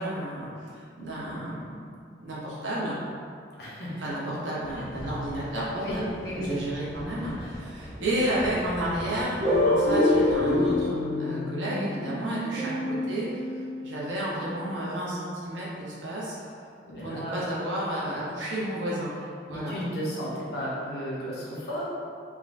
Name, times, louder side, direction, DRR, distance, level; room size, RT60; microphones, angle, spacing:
voice 1, 0.0-3.0 4.0-13.4 13.8-16.4 17.0-19.1 19.5-19.7, right 1 dB, 80° right, -6 dB, 0.8 m, -32 dB
voice 2, 3.6-4.0 5.8-6.5 7.4-7.5 16.8-17.4 19.4-21.9, equal, 55° left, -7 dB, 0.7 m, -34 dB
sound 1, 4.6-10.8, equal, 20° left, 0.3 m, -42 dB
sound 2, 9.4-14.0, left 1 dB, 30° right, 0.5 m, -26 dB
3.6 x 2.1 x 2.5 m, 2.3 s
head